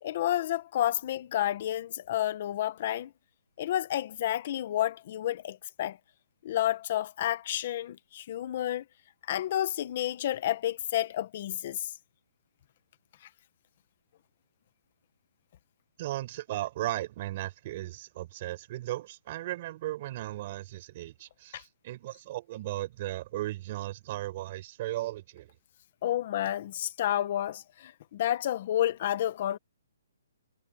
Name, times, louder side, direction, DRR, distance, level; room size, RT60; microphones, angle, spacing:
voice 1, 0.0-3.1 3.6-6.0 6.4-8.8 9.3-11.9 21.5-21.6 26.0-29.6, left 12 dB, 35° left, 1.2 m, -30 dB
voice 2, 16.0-25.5, right 15 dB, 30° right, 5.1 m, -36 dB
hypercardioid pair, 175°, 0 cm